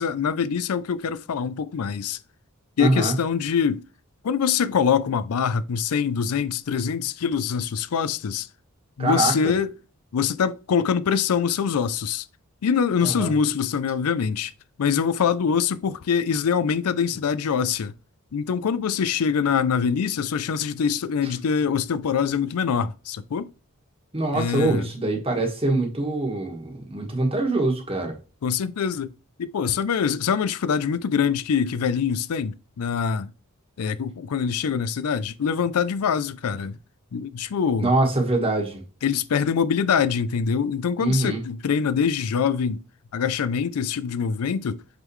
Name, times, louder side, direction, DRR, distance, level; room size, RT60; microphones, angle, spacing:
voice 1, 0.0-2.2 2.8-3.8 4.2-8.5 9.0-9.7 10.1-12.2 12.6-14.5 14.8-17.9 18.3-23.5 24.3-24.9 28.4-29.1 29.4-33.3 33.8-36.8 37.1-37.9 39.0-42.8 43.1-44.8, left 6 dB, 90° left, 0.4 m, -24 dB
voice 2, 2.8-3.2 9.0-9.3 13.0-13.3 24.1-28.2 37.8-38.8 41.0-41.4, right 2 dB, 25° right, 1.5 m, -24 dB
8.1 x 3.8 x 3.1 m
head